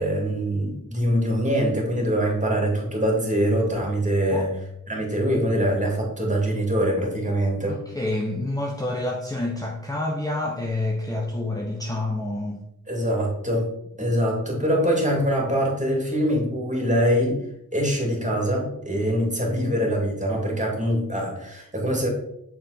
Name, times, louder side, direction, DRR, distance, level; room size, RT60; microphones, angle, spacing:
voice 1, 0.0-4.5 4.9-7.8 12.9-13.7 14.0-17.4 17.7-22.1, equal, 20° right, -1 dB, 2.7 m, -23 dB
voice 2, 7.7-12.6, left 2 dB, 10° left, 0 dB, 1.0 m, -28 dB
7.0 x 4.4 x 4.2 m, 0.78 s
cardioid pair, 55°, 34 cm